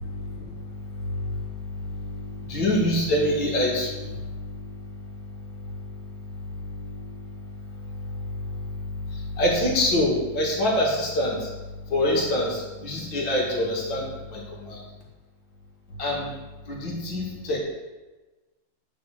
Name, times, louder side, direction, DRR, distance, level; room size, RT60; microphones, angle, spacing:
voice 1, 2.5-4.1 9.4-11.5 11.9-14.1 14.3-14.8 16.0-16.3 16.7-17.6, left 1 dB, 65° left, -3 dB, 2.9 m, -24 dB
10.5 x 4.5 x 6.8 m, 1.2 s
omnidirectional pair, 2.2 m